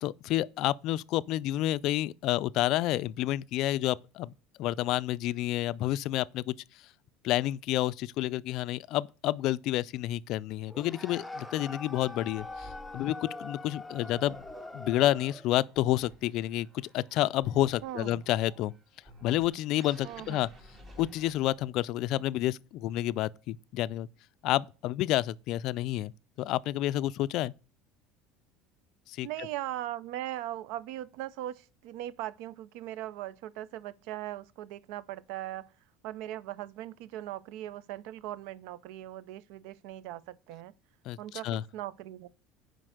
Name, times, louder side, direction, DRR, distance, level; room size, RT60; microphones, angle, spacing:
voice 1, 0.0-4.3 4.6-6.5 7.2-14.4 14.7-18.7 19.2-20.5 21.0-24.1 24.4-26.1 26.4-27.5 29.1-29.3 41.1-41.6, left 15 dB, 60° left, 0.3 m, -29 dB
sound 1, 10.7-15.5, left 2 dB, ahead, 0.6 m, -43 dB
sound 2, 12.4-21.8, equal, 30° right, 2.2 m, -55 dB
voice 2, 17.8-18.2 20.0-20.5 29.2-35.7 36.0-40.7 41.2-42.3, right 13 dB, 75° right, 0.4 m, -39 dB
7.5 x 5.2 x 6.4 m
cardioid pair, 130°, 0 cm